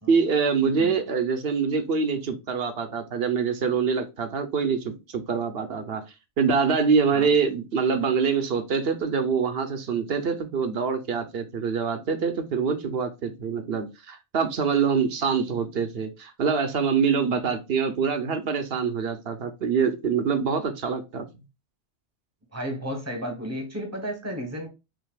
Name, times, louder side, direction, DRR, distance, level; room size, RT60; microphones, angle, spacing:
voice 1, 0.1-6.0 6.4-21.2, right 5 dB, 60° right, 1.0 m, -25 dB
voice 2, 22.5-24.7, equal, 15° right, 1.1 m, -33 dB
6.0 x 2.8 x 2.3 m
omnidirectional pair, 1.2 m